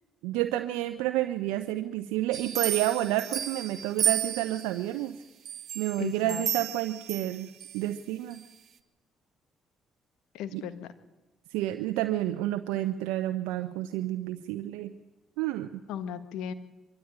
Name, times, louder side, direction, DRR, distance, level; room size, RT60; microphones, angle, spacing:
voice 1, 0.2-5.2 5.7-8.4 10.5-10.6 11.5-14.9 15.4-15.7, right 14 dB, 85° right, 8 dB, 0.8 m, -30 dB
sound 1, 2.3-4.9 5.4-7.8 8.3-8.4, right 10 dB, 60° right, 1.4 m, -32 dB
voice 2, 6.0-6.5 10.3-10.9 15.9-16.5, left 8 dB, 80° left, 12 dB, 1.5 m, -36 dB
24.5 x 14.0 x 8.8 m, 1.1 s
supercardioid pair, 60°, 0 cm